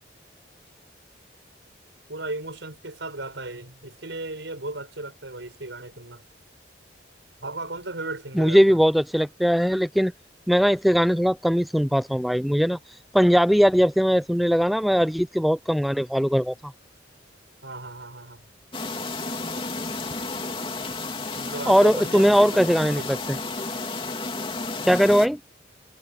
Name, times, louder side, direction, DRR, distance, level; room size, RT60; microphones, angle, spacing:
voice 1, 2.1-6.2 7.4-8.8 17.6-18.4 21.4-23.1, right 2 dB, 80° right, 5.4 m, -36 dB
voice 2, 8.3-10.1 10.5-12.8 13.1-16.7 21.7-23.2 24.8-25.4, equal, ahead, 0.4 m, -20 dB
sound 1, 18.7-25.3, left 3 dB, 30° left, 3.1 m, -32 dB
head